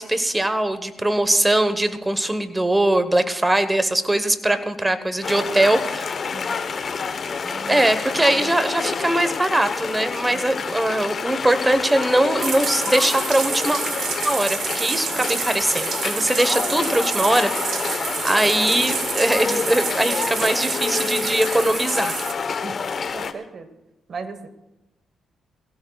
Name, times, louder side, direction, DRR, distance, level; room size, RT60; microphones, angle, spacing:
voice 1, 0.0-6.1 7.7-13.8 14.2-22.1, right 1 dB, 15° right, 10 dB, 1.1 m, -21 dB
sound 1, 5.2-23.3, left 5 dB, 45° left, 1.0 m, -28 dB
voice 2, 6.3-6.6 7.4-7.9 8.2-8.5 10.3-10.7 14.7-15.3 22.6-22.7 23.1-23.7 24.1-24.5, right 4 dB, 45° right, 9 dB, 1.2 m, -38 dB
Bathtub (filling or washing), 12.2-22.3, right 7 dB, 70° right, 1.7 m, -29 dB
22.0 x 16.5 x 2.4 m, 0.99 s
cardioid pair, 90°, 0 cm